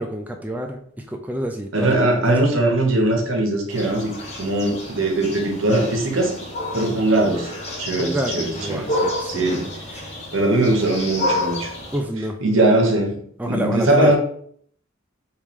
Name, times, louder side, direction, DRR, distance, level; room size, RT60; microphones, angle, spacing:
voice 1, 0.0-2.4 8.0-10.2 11.9-12.4 13.4-14.1, right 1 dB, 10° right, 3 dB, 0.3 m, -28 dB
voice 2, 1.7-4.1 4.4-6.3 6.7-7.5 7.8-8.9 9.3-9.7 10.3-11.7 12.4-14.2, right 2 dB, 75° right, 1 dB, 1.1 m, -20 dB
sound 1, 3.7-12.0, left 1 dB, 35° left, 1.3 m, -30 dB
5.0 x 3.2 x 3.1 m, 0.62 s
head